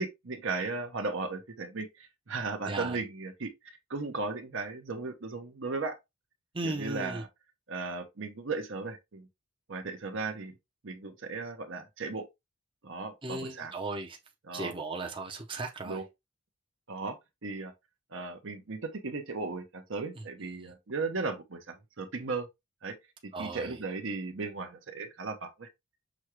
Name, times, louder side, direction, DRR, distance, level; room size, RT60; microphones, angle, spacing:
voice 1, 0.0-6.0 6.6-7.3 7.7-9.3 9.7-10.5 10.8-12.2 12.8-13.7 14.4-14.7 15.8-16.0 16.9-17.1 17.4-17.7 18.1-22.5 22.8-22.9 23.2-25.7, right 3 dB, 60° right, 0.8 m, -36 dB
voice 2, 2.7-3.0 6.5-7.2 13.2-14.2 14.5-16.0 20.6-20.7 23.3-23.8, right 2 dB, 25° right, 0.7 m, -36 dB
6.1 x 2.3 x 3.0 m
head